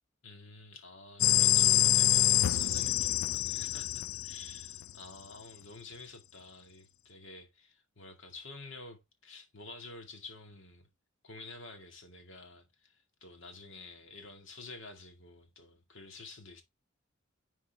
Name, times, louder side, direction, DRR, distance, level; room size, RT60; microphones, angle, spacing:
voice 1, 0.2-10.9 11.2-16.6, left 3 dB, 65° left, 2.2 m, -50 dB
sound 1, 1.2-4.9, left 14 dB, 85° left, 0.4 m, -26 dB
10.5 x 4.5 x 3.5 m
head